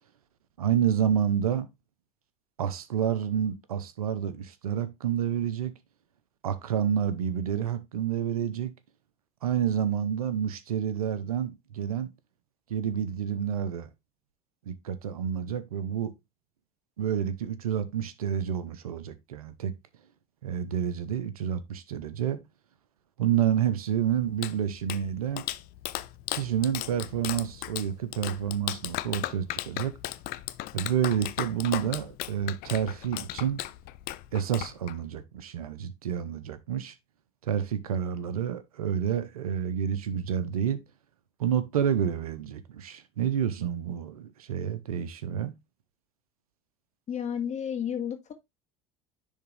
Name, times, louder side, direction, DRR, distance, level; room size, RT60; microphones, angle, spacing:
voice 1, 0.6-1.7 2.6-5.7 6.4-8.7 9.4-12.1 12.7-13.9 14.7-16.1 17.0-19.7 20.4-22.4 23.2-25.5 26.3-30.0 30.7-33.6 34.3-36.9 37.4-40.8 41.4-45.5, right 9 dB, 90° right, 0.8 m, -29 dB
Clapping, 24.1-35.2, left 16 dB, 55° left, 0.5 m, -36 dB
voice 2, 47.1-48.3, left 8 dB, 40° left, 1.8 m, -32 dB
10.0 x 3.6 x 3.3 m
hypercardioid pair, 70°, 18 cm